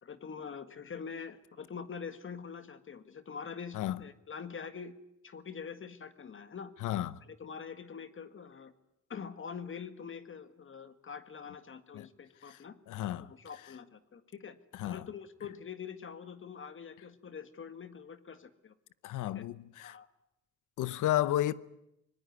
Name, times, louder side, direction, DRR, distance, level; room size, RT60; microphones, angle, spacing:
voice 1, 0.0-4.9 5.2-6.7 7.3-8.7 9.1-12.8 13.1-14.6 14.8-18.7 19.3-19.4 19.8-20.1, left 6 dB, 40° left, 1.8 m, -44 dB
voice 2, 6.8-7.2 11.9-12.1 12.5-12.6 12.9-13.3 14.7-15.0 19.0-20.0 20.8-21.5, left 13 dB, 80° left, 0.9 m, -32 dB
24.5 x 20.0 x 9.5 m
cardioid pair, 90°, 30 cm